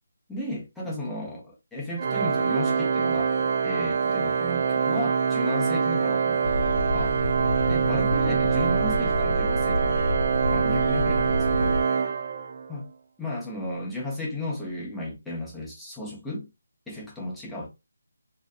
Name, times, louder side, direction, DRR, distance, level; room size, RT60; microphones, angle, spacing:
voice 1, 0.3-7.2 7.7-10.0 10.5-11.8 12.7-12.9 13.2-16.5 16.9-17.7, left 1 dB, ahead, 0.6 m, -34 dB
Organ, 2.0-12.8, right 6 dB, 40° right, 0.3 m, -25 dB
sound 1, 6.4-11.8, equal, 60° left, 0.5 m, -29 dB
2.6 x 2.3 x 2.2 m
figure-of-eight pair, 165°, 0 cm